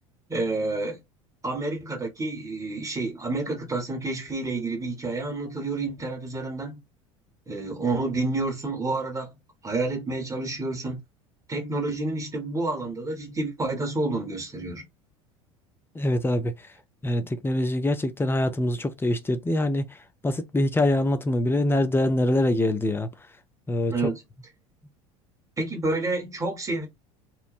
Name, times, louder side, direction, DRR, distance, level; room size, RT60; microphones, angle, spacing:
voice 1, 0.3-1.0 1.4-6.8 7.5-9.3 9.6-11.0 11.5-14.8 23.9-24.2 25.6-26.9, right 2 dB, 20° right, 1.1 m, -29 dB
voice 2, 16.0-16.5 17.0-19.9 20.2-23.1 23.7-23.9, left 1 dB, 15° left, 0.5 m, -24 dB
3.0 x 2.1 x 2.4 m
hypercardioid pair, 75°, 17 cm